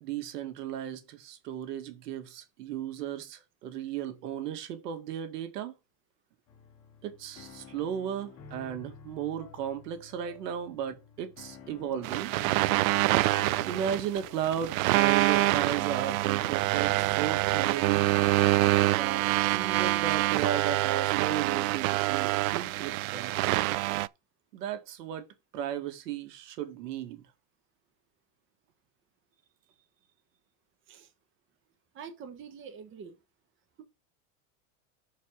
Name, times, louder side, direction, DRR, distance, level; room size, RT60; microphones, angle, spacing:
voice 1, 0.0-5.7 7.0-12.3 13.6-18.1 18.9-23.4 24.5-25.3 25.5-27.2, right 9 dB, 85° right, 2.0 m, -35 dB
sound 1, 6.5-22.7, left 6 dB, 30° left, 1.6 m, -51 dB
sound 2, 12.0-24.1, right 18 dB, 60° right, 0.5 m, -26 dB
voice 2, 31.9-33.2 33.8-33.9, right 6 dB, 25° right, 1.3 m, -46 dB
6.7 x 4.7 x 6.4 m
supercardioid pair, 150°, 47 cm